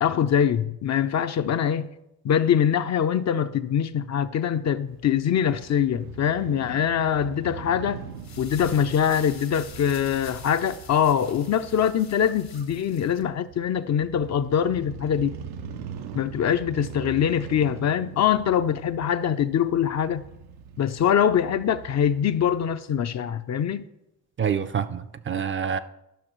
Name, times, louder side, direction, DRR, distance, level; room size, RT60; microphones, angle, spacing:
voice 1, 0.0-1.9 2.2-8.0 8.4-15.3 16.2-20.2 20.8-23.8, left 8 dB, 45° left, 0.5 m, -23 dB
Crow / Motorcycle, 4.9-22.8, right 7 dB, 85° right, 0.6 m, -42 dB
sound 1, 8.0-13.2, left 6 dB, 75° left, 1.6 m, -46 dB
voice 2, 24.4-25.8, right 7 dB, 35° right, 0.5 m, -27 dB
12.0 x 5.9 x 3.0 m
supercardioid pair, 60°, 37 cm